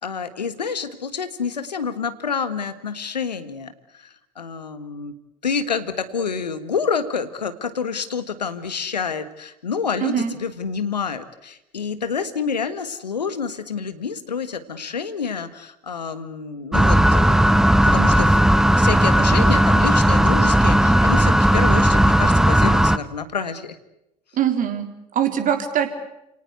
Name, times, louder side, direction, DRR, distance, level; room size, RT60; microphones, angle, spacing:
voice 1, 0.0-5.1 5.4-23.8, left 6 dB, 80° left, 12 dB, 1.6 m, -28 dB
voice 2, 10.0-10.3 24.3-25.9, right 9 dB, 40° right, 6 dB, 3.7 m, -22 dB
sound 1, 16.7-23.0, right 1 dB, ahead, 0.9 m, -16 dB
29.5 x 18.5 x 8.2 m, 0.87 s
figure-of-eight pair, 65°, 21 cm